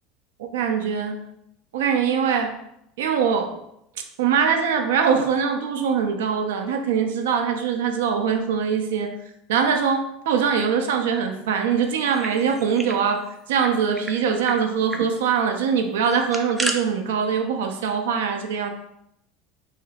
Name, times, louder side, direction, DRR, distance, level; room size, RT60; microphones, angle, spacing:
voice 1, 0.4-1.2 1.7-2.6 3.0-3.6 4.2-9.2 9.5-18.7, right 6 dB, 90° right, 5 dB, 0.4 m, -23 dB
sound 1, 11.9-13.0 13.3-13.4 13.6-14.2 14.5-14.6 14.9-15.1 16.0-16.8, right 2 dB, 10° right, 0.3 m, -31 dB
3.3 x 2.7 x 2.3 m, 0.76 s
supercardioid pair, 130°, 0 cm